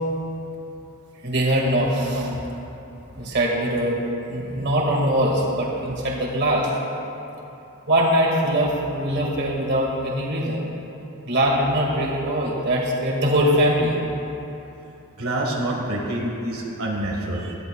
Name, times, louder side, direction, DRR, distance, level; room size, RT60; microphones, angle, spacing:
voice 1, 1.2-2.4 3.1-4.0 4.3-6.7 7.9-10.6 11.3-14.0, right 1 dB, 55° right, -2 dB, 2.0 m, -22 dB
voice 2, 15.2-17.5, right 1 dB, 85° right, -2 dB, 1.6 m, -27 dB
18.5 x 13.5 x 2.3 m, 2.9 s
head